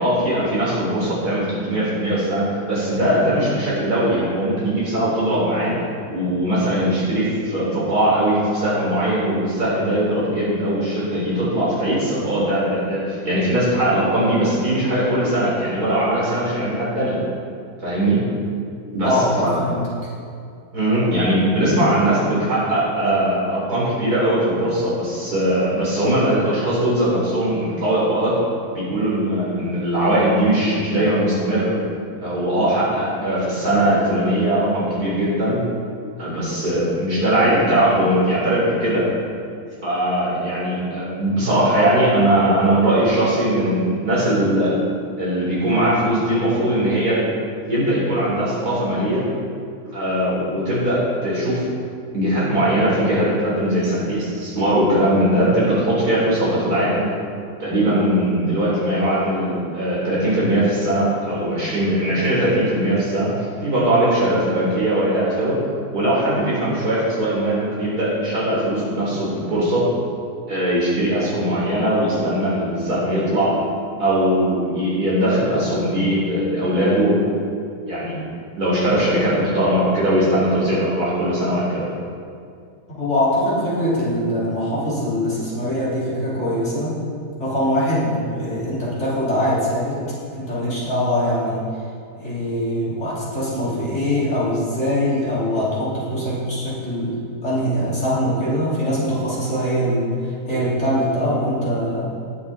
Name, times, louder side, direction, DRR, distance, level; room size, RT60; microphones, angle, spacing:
voice 1, 0.0-5.8 6.1-17.2 17.8-18.2 18.9-19.6 20.7-28.4 28.7-31.7 32.2-35.6 36.2-39.1 39.8-44.8 45.2-47.2 47.7-49.3 49.9-51.6 52.1-57.1 57.6-65.6 65.9-69.9 70.5-73.6 74.0-77.2 77.9-78.2 78.5-81.9, right 1 dB, 60° right, -7 dB, 4.2 m, -20 dB
voice 2, 19.0-19.9 83.0-87.0 87.4-90.0 90.3-91.6 92.1-97.2 97.4-102.1, equal, 40° left, -9 dB, 3.6 m, -22 dB
19.5 x 6.6 x 4.2 m, 2.3 s
omnidirectional pair, 1.8 m